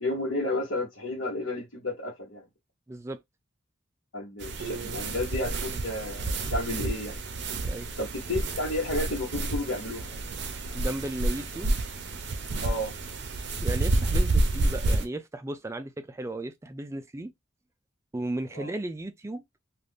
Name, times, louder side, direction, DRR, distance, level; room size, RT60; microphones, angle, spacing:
voice 1, 0.0-2.4 4.1-7.2 8.0-10.2 12.6-12.9 18.5-18.7, left 1 dB, 80° left, 1.2 m, -32 dB
voice 2, 2.9-3.2 7.6-7.9 10.7-11.8 13.6-17.3 18.1-19.4, right 1 dB, 15° right, 0.3 m, -35 dB
sound 1, 4.4-15.1, right 2 dB, 60° right, 0.6 m, -29 dB
2.5 x 2.4 x 3.4 m
head